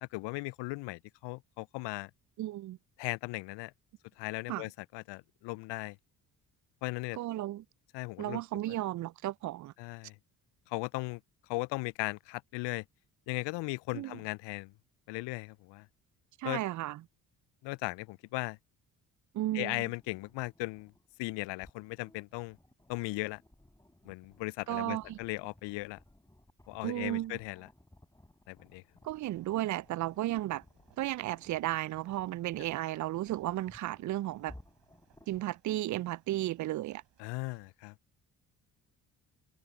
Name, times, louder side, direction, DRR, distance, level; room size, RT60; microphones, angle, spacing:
voice 1, 0.0-2.1 3.0-3.7 4.2-6.0 6.8-7.2 7.9-8.4 9.8-10.2 10.7-11.2 11.5-12.9 13.3-14.7 15.1-15.9 16.4-16.6 17.6-18.6 19.5-20.9 21.2-22.6 22.9-23.4 24.0-26.0 26.7-27.7 28.5-28.8 37.2-37.9, left 24 dB, 60° left, 0.5 m, -37 dB
voice 2, 2.4-2.8 4.5-4.6 7.2-7.6 8.2-9.7 13.9-14.2 16.4-17.0 19.3-19.9 24.7-25.2 26.8-27.4 29.0-30.6 31.0-34.5 35.3-37.0, right 15 dB, 40° right, 0.4 m, -34 dB
sound 1, 19.9-35.4, left 1 dB, 5° left, 3.6 m, -60 dB
sound 2, 28.5-32.8, left 25 dB, 80° left, 4.3 m, -73 dB
sound 3, 29.1-37.7, right 10 dB, 60° right, 6.9 m, -68 dB
hypercardioid pair, 45°, 48 cm